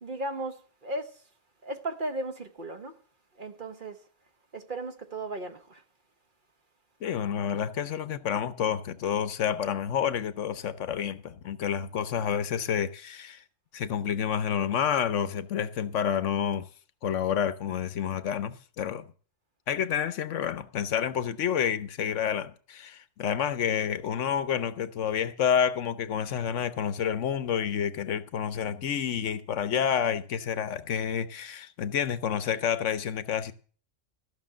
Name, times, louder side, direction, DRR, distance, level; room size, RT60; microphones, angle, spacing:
voice 1, 0.0-1.2 1.6-2.9 3.4-4.0 4.5-5.8, right 2 dB, 45° right, 1.1 m, -36 dB
voice 2, 7.0-13.4 13.7-16.7 17.0-19.0 19.7-33.5, left 8 dB, 75° left, 1.1 m, -29 dB
14.0 x 6.2 x 7.3 m
omnidirectional pair, 1.3 m